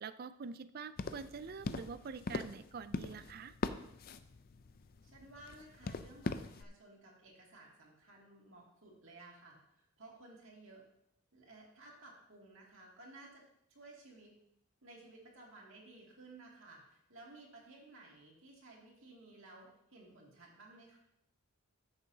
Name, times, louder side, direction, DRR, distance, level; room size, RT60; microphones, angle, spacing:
voice 1, 0.0-3.6, right 5 dB, 45° right, 14 dB, 0.4 m, -46 dB
sound 1, 1.0-6.6, left 3 dB, 40° left, 0.4 m, -42 dB
voice 2, 5.0-10.8 11.3-13.4 13.7-14.3 14.8-21.0, right 2 dB, 60° right, -2 dB, 2.4 m, -56 dB
13.5 x 6.8 x 2.8 m, 0.76 s
head